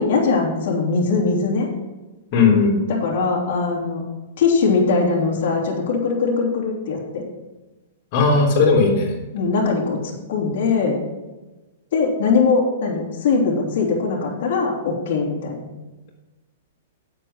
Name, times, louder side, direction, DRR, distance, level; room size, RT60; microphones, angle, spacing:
voice 1, 0.0-1.7 2.9-4.0 4.4-7.2 9.3-11.0 11.9-15.7, left 4 dB, 60° left, -3 dB, 3.0 m, -21 dB
voice 2, 2.3-2.8 8.1-9.1, left 4 dB, 40° left, -2 dB, 3.4 m, -16 dB
8.8 x 7.7 x 5.7 m, 1.1 s
hypercardioid pair, 150°, 0 cm